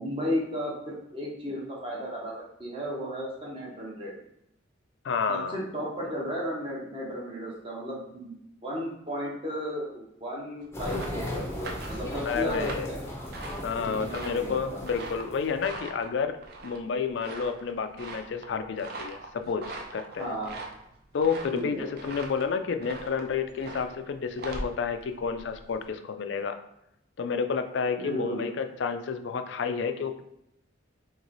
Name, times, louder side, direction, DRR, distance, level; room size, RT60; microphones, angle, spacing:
voice 1, 0.0-2.3 2.6-4.1 5.3-8.4 8.6-11.0 11.3-13.1 13.8-14.8 20.2-20.5 21.5-21.8 28.0-28.5, equal, 25° right, -4 dB, 0.8 m, -34 dB
voice 2, 5.0-5.6 12.2-12.9 13.6-20.3 21.1-26.6 27.2-30.2, left 5 dB, 60° left, 8 dB, 0.4 m, -30 dB
sound 1, 10.6-25.9, right 2 dB, 50° right, 0.5 m, -42 dB
sound 2, 10.7-15.8, left 1 dB, 15° left, 0.6 m, -36 dB
3.0 x 2.9 x 3.9 m, 0.80 s
head